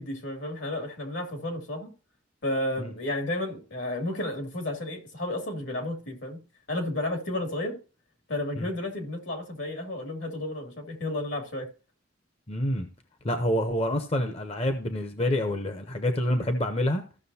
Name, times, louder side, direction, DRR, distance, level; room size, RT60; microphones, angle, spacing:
voice 1, 0.0-1.9 2.4-6.4 6.7-7.8 8.3-11.7, left 1 dB, 75° left, 2.4 m, -32 dB
voice 2, 12.5-12.9 13.2-17.0, left 1 dB, 30° left, 0.7 m, -27 dB
14.5 x 6.2 x 2.7 m
head